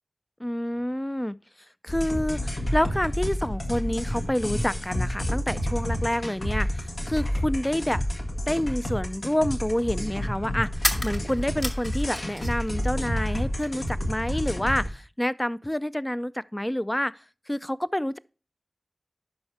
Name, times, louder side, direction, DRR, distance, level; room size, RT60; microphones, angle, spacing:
voice 1, 0.4-1.4 1.8-8.0 8.5-17.1 17.5-18.2, left 1 dB, 15° left, 0.4 m, -28 dB
sound 1, 1.9-14.9, equal, 70° left, 1.6 m, -29 dB
sound 2, 10.8-12.7 13.0-13.9, left 1 dB, 35° left, 2.0 m, -32 dB
11.0 x 5.3 x 3.4 m
wide cardioid pair, 40°, 0 cm